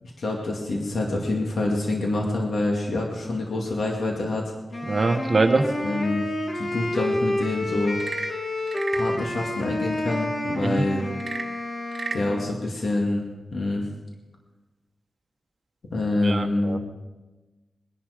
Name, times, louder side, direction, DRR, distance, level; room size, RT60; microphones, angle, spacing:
voice 1, 0.0-4.5 5.8-6.3 6.5-8.0 8.9-11.0 12.1-13.9 15.9-16.8, left 2 dB, 75° left, 0 dB, 2.3 m, -26 dB
Wind instrument woodwind instrument, 4.7-12.6, left 1 dB, 45° left, 1.8 m, -29 dB
voice 2, 4.9-5.6 10.6-10.8 16.2-16.8, right 3 dB, 40° right, 3 dB, 1.3 m, -23 dB
Frog / Percussion / Wood, 7.9-9.2 11.1-12.3, right 4 dB, 60° right, 1.3 m, -34 dB
22.0 x 11.0 x 5.1 m, 1.2 s
wide cardioid pair, 110°, 0 cm